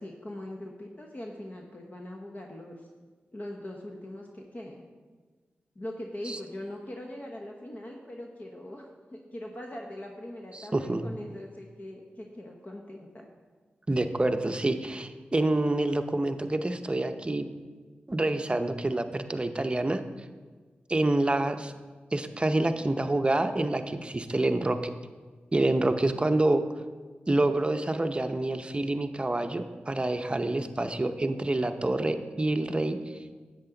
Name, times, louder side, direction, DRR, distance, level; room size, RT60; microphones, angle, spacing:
voice 1, 0.0-2.9 3.3-4.8 5.7-13.3, left 1 dB, 40° left, 1 dB, 1.0 m, -41 dB
voice 2, 10.5-11.0 13.9-17.5 18.1-20.0 20.9-21.7 22.1-24.8 25.5-26.6 27.3-33.0, right 2 dB, 25° right, 7 dB, 0.7 m, -27 dB
10.5 x 7.8 x 3.9 m, 1.4 s
cardioid pair, 55°, 4 cm